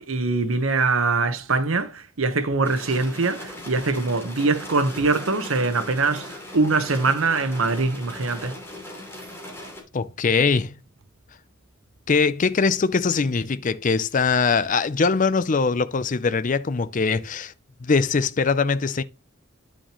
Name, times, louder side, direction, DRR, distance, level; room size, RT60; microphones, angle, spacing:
voice 1, 0.0-8.5, right 3 dB, 90° right, 1.1 m, -23 dB
sound 1, 2.6-9.8, left 1 dB, 15° left, 2.8 m, -39 dB
voice 2, 9.9-10.7 12.1-17.5 17.8-19.0, left 4 dB, 40° left, 0.5 m, -22 dB
10.0 x 6.3 x 3.0 m
head